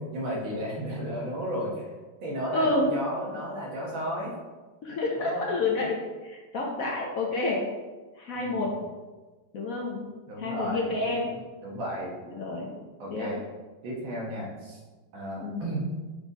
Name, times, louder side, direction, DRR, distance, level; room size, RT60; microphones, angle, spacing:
voice 1, 0.1-1.9 2.2-4.3 5.2-5.5 8.4-8.7 10.3-10.8 11.6-12.1 13.0-13.4 13.8-14.8 15.1-15.9, equal, 85° right, -3 dB, 2.2 m, -33 dB
voice 2, 2.5-2.9 4.8-7.6 8.2-8.7 9.5-10.1 10.4-11.3 12.3-12.7 13.1-13.3 15.4-15.7, left 2 dB, 55° left, -1 dB, 1.0 m, -29 dB
5.7 x 4.1 x 4.0 m, 1.3 s
omnidirectional pair, 2.1 m